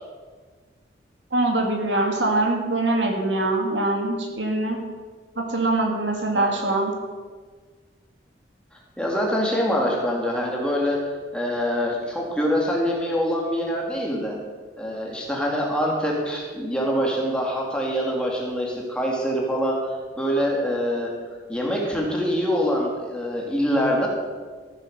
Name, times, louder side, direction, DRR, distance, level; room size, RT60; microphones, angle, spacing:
voice 1, 1.3-4.8 5.4-6.9, right 2 dB, 80° right, 2 dB, 2.2 m, -23 dB
voice 2, 6.3-6.7 9.0-11.0 11.3-14.4 14.8-19.8 20.2-21.1 21.5-24.1, equal, 5° left, -2 dB, 2.2 m, -24 dB
14.0 x 7.6 x 6.7 m, 1.5 s
head